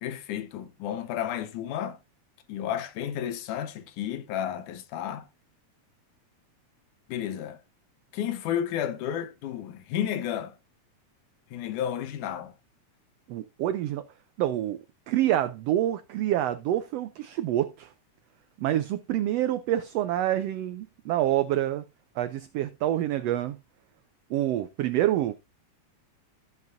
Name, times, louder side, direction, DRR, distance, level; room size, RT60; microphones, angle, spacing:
voice 1, 0.0-2.0 2.5-5.3 7.1-7.6 8.1-10.6 11.5-12.5, left 10 dB, 90° left, 2.5 m, -32 dB
voice 2, 13.3-14.0 14.4-14.8 15.1-17.9 18.6-21.8 22.2-23.6 24.3-25.3, right 13 dB, 80° right, 1.4 m, -27 dB
14.5 x 7.5 x 2.6 m
omnidirectional pair, 3.4 m